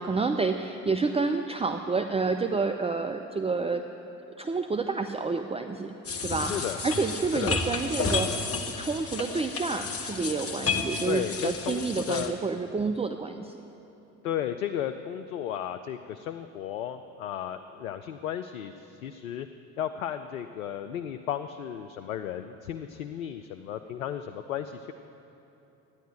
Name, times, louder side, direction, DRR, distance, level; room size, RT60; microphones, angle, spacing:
voice 1, 0.0-3.8 4.4-5.9 6.2-8.5 8.8-13.5, right 4 dB, 15° right, 6 dB, 0.7 m, -29 dB
sound 1, 6.0-12.3, left 4 dB, 35° left, 1.5 m, -32 dB
voice 2, 11.0-12.3 14.2-19.5 19.8-24.9, left 10 dB, 85° left, 8 dB, 0.6 m, -34 dB
13.0 x 10.5 x 9.4 m, 3.0 s
hypercardioid pair, 55°, 39 cm